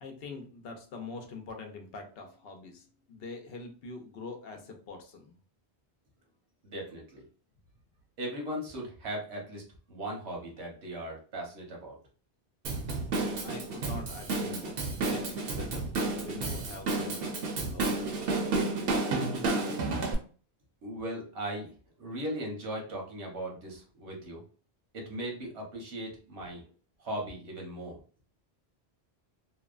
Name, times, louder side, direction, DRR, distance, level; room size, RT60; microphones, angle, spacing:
voice 1, 0.0-5.4 13.4-15.8 16.1-18.4, left 3 dB, 70° left, 3 dB, 0.8 m, -44 dB
voice 2, 6.6-7.2 8.2-9.6 9.9-12.0 20.8-21.7 22.0-24.4 24.9-26.6 27.0-28.0, right 1 dB, 85° right, -1 dB, 1.2 m, -38 dB
Drum kit / Drum, 12.6-20.1, right 3 dB, 65° right, 0.8 m, -31 dB
2.8 x 2.1 x 2.3 m, 0.40 s
omnidirectional pair, 1.1 m